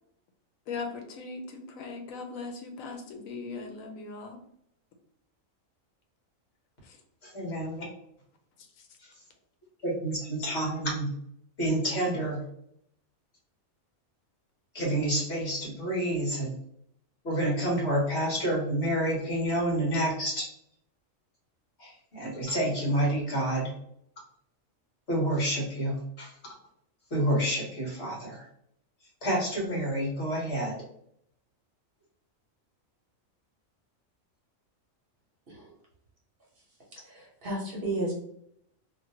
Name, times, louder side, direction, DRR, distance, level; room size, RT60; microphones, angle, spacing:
voice 1, 0.7-4.4 6.8-7.0 7.6-8.0 8.8-8.9, left 4 dB, 85° left, 4 dB, 1.0 m, -39 dB
voice 2, 7.2-7.8 9.0-9.1 9.8-11.1 11.6-12.4 14.7-16.5 17.2-20.5 21.8-23.7 25.1-26.3 27.1-28.5 29.2-30.8, right 1 dB, 55° left, -3 dB, 1.4 m, -29 dB
voice 3, 36.9-38.1, right 1 dB, 45° right, -4 dB, 1.0 m, -33 dB
3.0 x 2.5 x 2.7 m, 0.70 s
omnidirectional pair, 1.4 m